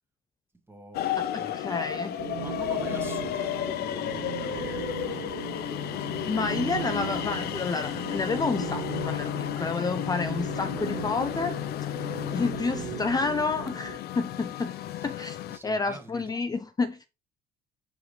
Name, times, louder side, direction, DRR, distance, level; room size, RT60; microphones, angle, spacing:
voice 1, 0.7-1.0 1.4-1.6 2.3-5.7 15.0-15.1 15.5-16.3, right 2 dB, 15° right, 1.6 m, -46 dB
sound 1, 0.9-15.6, left 12 dB, 70° left, 0.6 m, -33 dB
voice 2, 1.3-2.2 6.2-11.6 11.9-12.0 12.3-14.7 15.0-17.1, left 4 dB, 20° left, 0.5 m, -30 dB
sound 2, 2.2-14.0, right 17 dB, 85° right, 0.4 m, -39 dB
6.9 x 4.7 x 3.1 m
cardioid pair, 110°, 17 cm